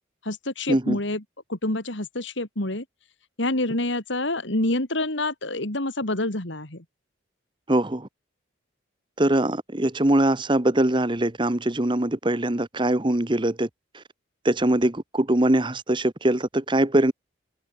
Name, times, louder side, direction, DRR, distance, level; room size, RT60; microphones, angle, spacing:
voice 1, 0.2-1.2 1.5-2.8 3.4-6.8, left 2 dB, 70° left, 3.2 m, -27 dB
voice 2, 7.7-8.1 9.2-13.7 13.9-14.0 14.4-17.1, right 1 dB, 25° right, 1.1 m, -22 dB
open air
head